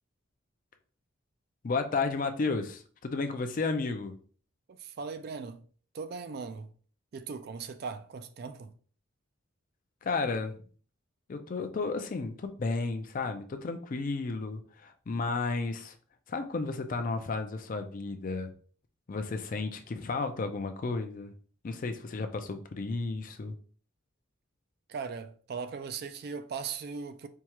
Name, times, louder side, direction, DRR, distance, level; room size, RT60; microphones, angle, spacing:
voice 1, 1.6-4.2 10.0-10.6 11.3-15.9 16.3-18.5 19.1-21.3 21.6-23.6, left 3 dB, 40° left, 0.4 m, -33 dB
voice 2, 4.7-5.6 5.9-6.7 7.1-8.7 24.9-27.3, right 5 dB, 50° right, 0.3 m, -39 dB
4.5 x 2.3 x 2.9 m
head